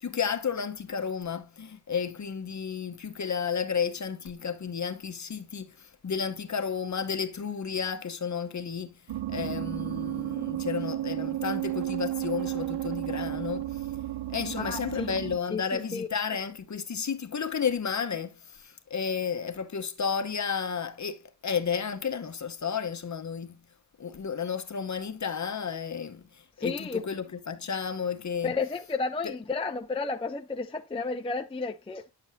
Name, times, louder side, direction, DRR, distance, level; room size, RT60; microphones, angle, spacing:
voice 1, 0.0-9.0 9.3-13.8 14.3-23.6 24.0-26.2 26.6-28.6 29.2-29.3, left 6 dB, 40° left, 0.9 m, -32 dB
sound 1, 9.1-15.4, right 14 dB, 80° right, 0.7 m, -33 dB
voice 2, 14.6-15.1 15.5-16.1 26.6-27.0 28.4-32.0, left 4 dB, 15° left, 0.4 m, -32 dB
8.6 x 7.5 x 2.6 m
wide cardioid pair, 130°, 42 cm